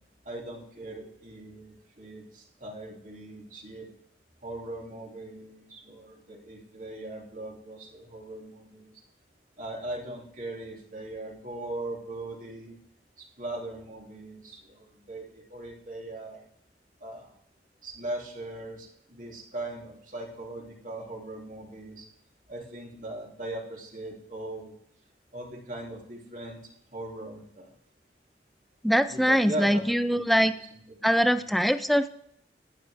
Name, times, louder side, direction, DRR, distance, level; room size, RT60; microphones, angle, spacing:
voice 1, 0.2-3.9 4.4-8.9 9.6-12.8 13.2-16.4 17.0-17.3 17.8-22.1 22.5-24.7 25.3-26.6 26.9-27.7 29.1-30.4 30.7-31.5, right 1 dB, 45° right, -1 dB, 3.0 m, -39 dB
voice 2, 28.8-30.5 31.0-32.1, equal, ahead, 12 dB, 0.4 m, -23 dB
11.5 x 10.0 x 3.4 m, 0.70 s
head